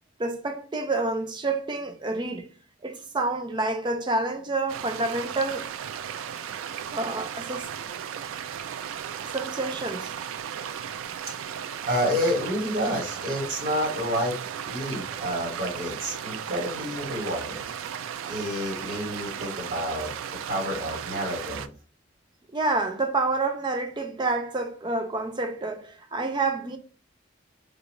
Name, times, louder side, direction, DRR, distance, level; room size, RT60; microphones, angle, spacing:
voice 1, 0.2-2.5 2.8-5.7 6.9-7.7 9.3-10.1 22.5-26.8, right 2 dB, 25° right, 0.4 m, -28 dB
sound 1, 4.7-21.7, right 8 dB, 90° right, 0.3 m, -35 dB
voice 2, 11.5-14.4 14.6-17.6 18.3-20.1 20.5-21.7, equal, 45° right, 1.4 m, -29 dB
3.8 x 2.3 x 2.9 m
head